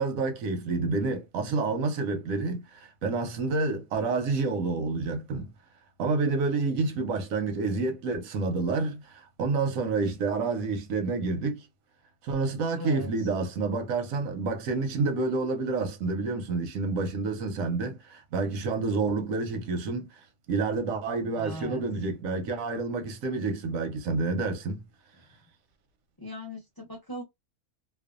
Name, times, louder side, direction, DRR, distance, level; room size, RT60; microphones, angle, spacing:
voice 1, 0.0-5.5 6.0-11.7 12.2-24.8, right 3 dB, 90° right, 1.1 m, -29 dB
voice 2, 12.8-13.1 21.4-21.8 26.2-27.2, left 1 dB, 25° left, 0.5 m, -39 dB
2.6 x 2.2 x 2.4 m
omnidirectional pair, 1.4 m